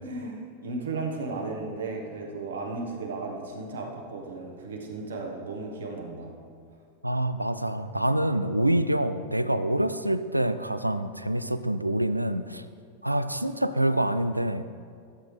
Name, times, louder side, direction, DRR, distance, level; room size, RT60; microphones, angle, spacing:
voice 1, 0.0-6.3, right 3 dB, 65° right, 1 dB, 1.3 m, -35 dB
voice 2, 7.0-12.6 13.0-14.6, right 1 dB, 85° right, 12 dB, 0.3 m, -26 dB
13.0 x 7.8 x 3.3 m, 2.3 s
figure-of-eight pair, 90°, 0 cm